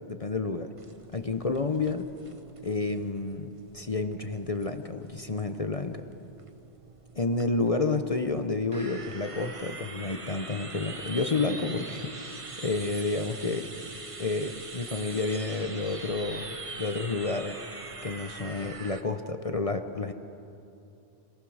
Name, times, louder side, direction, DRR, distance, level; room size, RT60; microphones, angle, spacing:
voice 1, 0.1-0.7 1.1-2.1 2.6-6.1 7.1-13.7 14.2-17.6 18.0-20.1, left 3 dB, 35° left, 7 dB, 0.8 m, -30 dB
sound 1, 0.8-19.0, right 3 dB, 30° right, 1.1 m, -43 dB
26.0 x 18.5 x 6.4 m, 2.8 s
omnidirectional pair, 1.2 m